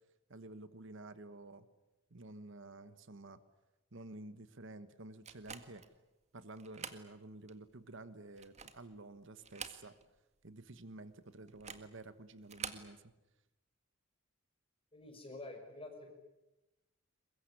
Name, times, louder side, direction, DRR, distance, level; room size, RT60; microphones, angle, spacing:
voice 1, 0.3-1.7 2.1-3.4 3.9-5.8 6.3-10.0 10.4-13.1, right 2 dB, 65° right, 13 dB, 1.3 m, -51 dB
sound 1, 5.2-5.9 6.6-7.1 7.5-7.6 8.3-8.9 9.4-10.2 10.5-10.6 11.5-11.9 12.4-12.9, right 6 dB, 35° right, 1.8 m, -47 dB
voice 2, 14.9-16.1, left 2 dB, 25° left, 4 dB, 5.8 m, -48 dB
23.5 x 21.5 x 9.9 m, 1.0 s
head